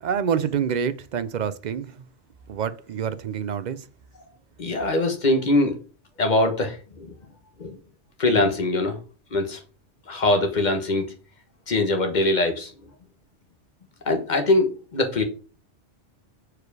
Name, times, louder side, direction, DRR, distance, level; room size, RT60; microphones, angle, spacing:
voice 1, 0.0-2.0 2.5-3.9, right 7 dB, 60° right, 0.5 m, -27 dB
voice 2, 4.6-5.8 6.2-7.1 7.6-7.8 8.2-9.0 9.3-9.6 10.1-11.1 11.7-12.7 14.0-15.2, left 2 dB, 40° left, 1.3 m, -22 dB
4.9 x 4.8 x 4.6 m
omnidirectional pair, 1.2 m